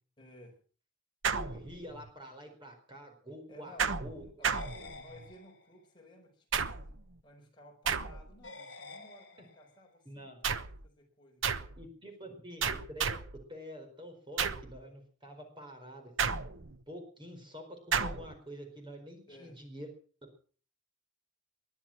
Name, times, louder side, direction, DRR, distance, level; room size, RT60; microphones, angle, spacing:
voice 1, 0.2-0.6 3.5-7.0 7.2-10.5 10.8-12.4 19.3-19.6, left 1 dB, 20° left, 1 dB, 4.9 m, -57 dB
sound 1, 1.2-2.1 3.8-5.3 6.5-7.1 7.9-8.5 10.4-10.9 11.4-11.8 12.6-13.4 14.4-14.8 16.2-16.8 17.9-18.3, right 6 dB, 65° right, 1.0 m, -33 dB
voice 2, 1.3-4.2 10.0-10.4 11.8-13.2 13.5-16.3 16.9-19.9, equal, 25° right, 4 dB, 4.6 m, -47 dB
sound 2, 4.4-5.8 8.4-9.8, left 3 dB, 55° left, 3.2 m, -49 dB
21.0 x 11.5 x 5.9 m, 0.42 s
head